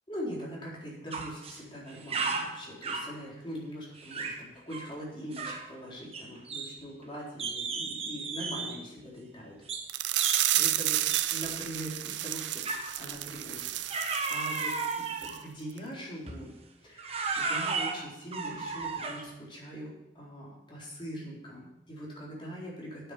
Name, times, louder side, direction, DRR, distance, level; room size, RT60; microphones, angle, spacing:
voice 1, 0.1-9.6 9.9-12.6 12.9-13.9 14.3-16.5 16.8-23.1, equal, 30° left, -5 dB, 4.2 m, -42 dB
sound 1, 1.1-1.6 1.9-3.2 4.0-4.4 4.7-4.9 5.3-5.7 6.1-7.0 7.4-8.8 9.7-9.9 10.2-10.5 11.1-11.3 12.6-13.0 13.9-15.4 16.3-16.5 17.0-19.3, right 4 dB, 35° right, 1.3 m, -34 dB
sound 2, 9.9-14.9 15.2-15.4 15.8-15.9, right 14 dB, 80° right, 0.5 m, -31 dB
9.1 x 8.6 x 6.9 m, 0.91 s
head